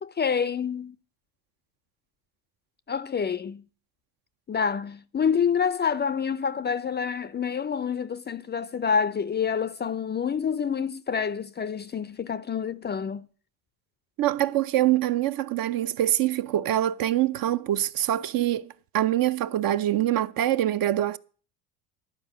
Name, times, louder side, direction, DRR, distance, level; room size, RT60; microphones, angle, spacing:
voice 1, 0.0-1.0 2.9-3.6 4.5-13.3, left 7 dB, 25° left, 0.5 m, -27 dB
voice 2, 14.2-18.7 18.9-21.2, right 13 dB, 50° right, 0.7 m, -24 dB
11.5 x 4.9 x 8.2 m
supercardioid pair, 80°, 44 cm